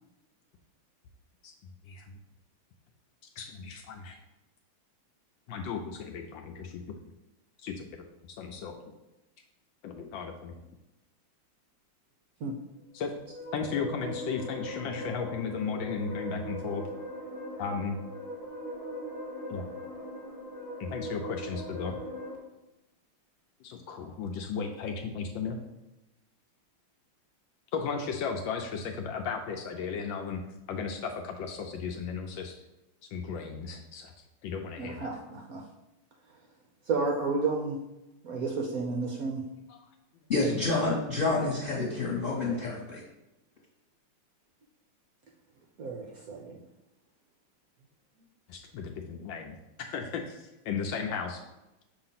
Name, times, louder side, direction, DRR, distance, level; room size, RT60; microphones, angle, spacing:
voice 1, 1.9-2.2 3.4-4.2 5.5-6.9 7.6-7.8 8.3-8.8 9.8-10.6 12.9-13.1 13.5-16.9 17.6-18.0 19.5-19.7 20.8-22.0 23.6-25.6 27.7-30.4 30.7-32.6 33.1-34.1 34.4-35.2 39.7-39.8 48.5-51.4, left 5 dB, 75° left, 4 dB, 1.2 m, -35 dB
sound 1, 12.9-22.3, equal, 10° left, 1.4 m, -40 dB
voice 2, 34.8-35.6 36.9-37.8 38.2-39.4 40.4-40.7 42.4-42.6 45.8-46.6, right 3 dB, 70° right, 0 dB, 0.8 m, -32 dB
voice 3, 40.3-43.0, left 3 dB, 30° left, -4 dB, 1.4 m, -28 dB
6.7 x 2.9 x 5.7 m, 0.97 s
omnidirectional pair, 2.4 m